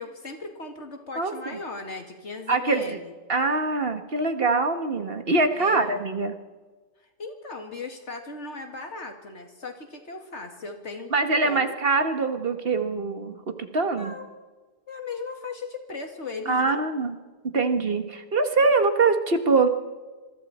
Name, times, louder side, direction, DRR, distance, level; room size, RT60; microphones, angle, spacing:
voice 1, 0.0-3.1 5.5-6.0 7.0-11.1 11.4-11.7 14.0-14.3 14.9-16.8 18.6-18.7, left 3 dB, 80° left, 4 dB, 2.7 m, -37 dB
voice 2, 2.5-3.0 3.3-6.4 11.1-14.2 16.5-17.1 17.5-19.7, right 3 dB, 55° right, 7 dB, 1.7 m, -23 dB
26.5 x 22.5 x 4.4 m, 1.3 s
omnidirectional pair, 1.2 m